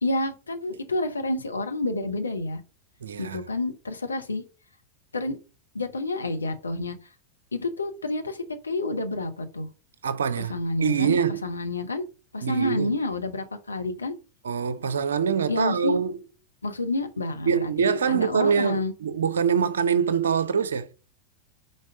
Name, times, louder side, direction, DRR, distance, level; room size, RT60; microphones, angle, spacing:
voice 1, 0.0-2.6 3.2-4.4 5.1-5.4 5.7-7.0 7.5-9.7 10.5-11.2 11.4-12.0 12.3-14.1 15.5-16.0 16.6-18.9, left 2 dB, 75° left, 0.8 m, -29 dB
voice 2, 3.0-3.4 10.0-11.4 12.4-12.9 14.4-16.2 17.5-20.9, right 7 dB, 65° right, 0.6 m, -24 dB
5.3 x 3.9 x 4.8 m
figure-of-eight pair, 90°, 0 cm